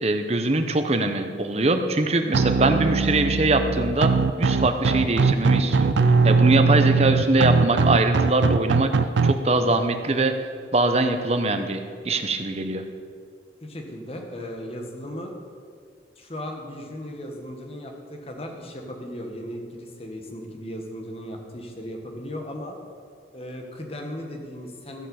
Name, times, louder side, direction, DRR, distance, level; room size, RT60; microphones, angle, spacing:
voice 1, 0.0-4.1 4.4-5.9 6.2-8.9 9.2-10.3 10.7-12.8, right 2 dB, 35° right, 7 dB, 0.8 m, -22 dB
sound 1, 2.3-9.3, right 4 dB, 85° right, 0.5 m, -20 dB
voice 2, 13.6-15.4 16.2-22.8 23.3-25.1, equal, 35° left, 2 dB, 1.4 m, -36 dB
14.5 x 5.6 x 7.0 m, 2.1 s
head